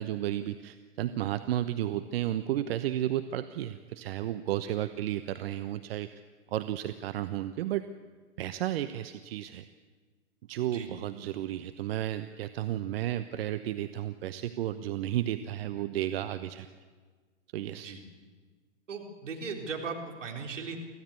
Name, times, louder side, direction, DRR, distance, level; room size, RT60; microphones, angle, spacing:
voice 1, 0.0-6.1 6.5-7.8 8.4-9.7 10.5-16.7 17.5-17.9, right 12 dB, 50° right, 10 dB, 1.0 m, -33 dB
voice 2, 18.9-20.8, right 5 dB, 75° right, 1 dB, 4.0 m, -38 dB
24.5 x 16.0 x 8.4 m, 1.5 s
figure-of-eight pair, 110°, 37 cm